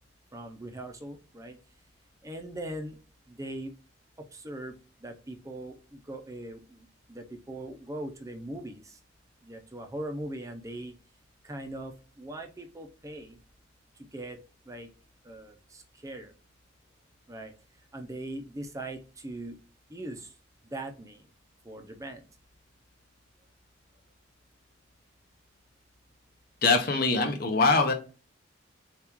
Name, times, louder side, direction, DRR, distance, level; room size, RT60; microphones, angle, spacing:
voice 1, 0.3-1.6 2.2-3.0 3.3-3.7 4.2-9.0 9.4-10.9 11.4-13.4 14.0-14.4 14.7-14.9 15.2-16.3 17.3-17.5 17.9-19.6 19.9-20.3 20.6-21.2 21.6-22.2, right 1 dB, 15° right, 0.5 m, -40 dB
voice 2, 26.6-27.9, left 3 dB, 50° left, 0.8 m, -23 dB
7.0 x 2.4 x 3.0 m
head